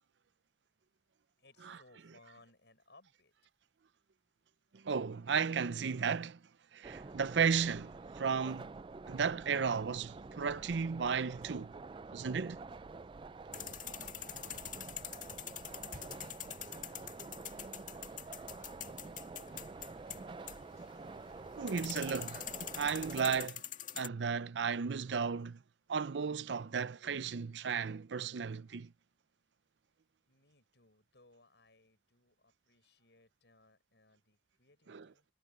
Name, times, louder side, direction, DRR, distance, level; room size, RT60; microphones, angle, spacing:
voice 1, 1.4-3.3 13.5-19.6 30.3-35.3, left 2 dB, 75° left, 5.8 m, -66 dB
voice 2, 4.7-6.4 6.7-8.7 9.1-11.7 12.1-12.6 21.6-22.5 22.7-23.6 23.9-25.6 25.9-28.9 34.9-35.1, right 6 dB, 90° right, 0.5 m, -34 dB
sound 1, 6.8-23.5, right 3 dB, 30° right, 0.4 m, -48 dB
sound 2, 11.4-11.7 13.5-14.9 15.9-16.4, right 1 dB, 50° right, 5.6 m, -57 dB
sound 3, 13.5-24.1, left 10 dB, 45° left, 2.0 m, -45 dB
head